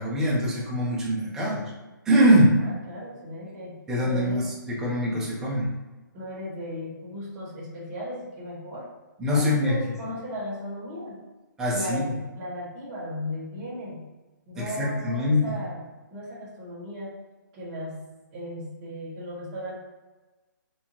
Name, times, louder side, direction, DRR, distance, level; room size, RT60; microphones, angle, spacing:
voice 1, 0.0-1.6 2.1-2.6 3.9-5.7 9.2-9.8 11.6-12.0 14.6-15.6, equal, 5° right, -5 dB, 0.5 m, -23 dB
voice 2, 2.6-4.5 5.0-5.2 6.1-8.9 9.3-11.2 11.7-14.1 14.5-17.1 17.5-18.0 18.3-19.8, equal, 20° right, -7 dB, 1.2 m, -36 dB
4.4 x 2.7 x 2.7 m, 1.2 s
hypercardioid pair, 165°, 11 cm